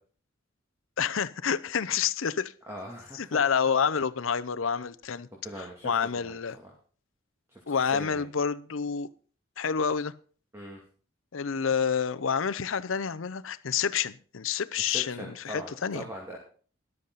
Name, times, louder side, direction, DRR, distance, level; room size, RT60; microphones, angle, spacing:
voice 1, 1.0-2.5 3.1-5.3 5.6-6.6 7.7-9.1 9.6-10.1 11.3-16.0, left 6 dB, 80° left, 0.6 m, -28 dB
voice 2, 2.7-3.4 5.4-6.7 7.5-7.6 7.9-8.2 10.5-10.8 14.9-16.4, equal, 15° right, 2.3 m, -41 dB
13.0 x 12.0 x 4.0 m
head